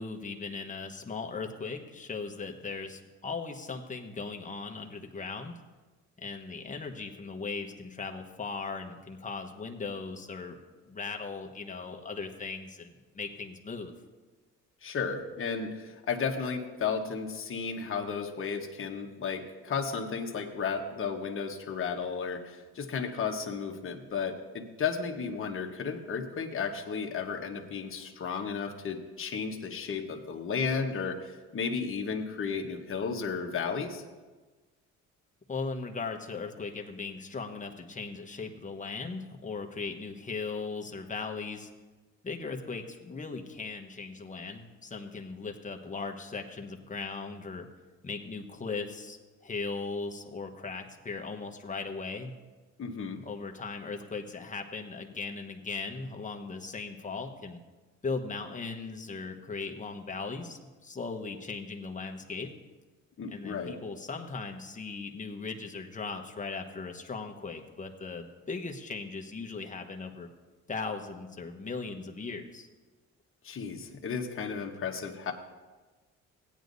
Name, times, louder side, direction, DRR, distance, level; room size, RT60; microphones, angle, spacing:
voice 1, 0.0-5.6 6.2-10.6 10.8-13.9 35.5-41.7 42.2-47.7 48.0-52.3 53.2-57.6 58.0-62.5 63.3-70.3 70.7-72.7, left 4 dB, 25° left, 4 dB, 1.1 m, -38 dB
voice 2, 14.8-34.0 52.8-53.2 63.2-63.7 73.4-75.3, left 5 dB, 45° left, 2 dB, 1.3 m, -33 dB
16.5 x 9.4 x 2.7 m, 1.3 s
cardioid pair, 90°, 30 cm